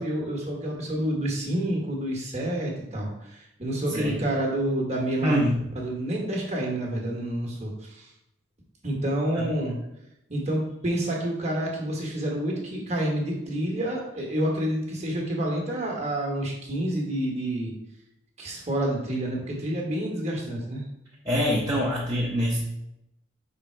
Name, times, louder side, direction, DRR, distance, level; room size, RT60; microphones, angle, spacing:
voice 1, 0.0-5.4 5.7-8.1 8.8-9.8 10.3-17.7 18.4-20.8, right 1 dB, 35° right, -1 dB, 1.4 m, -28 dB
voice 2, 3.9-4.2 5.2-5.6 9.3-9.5 21.2-22.6, equal, 20° right, -6 dB, 0.8 m, -25 dB
5.5 x 3.8 x 4.5 m, 0.84 s
head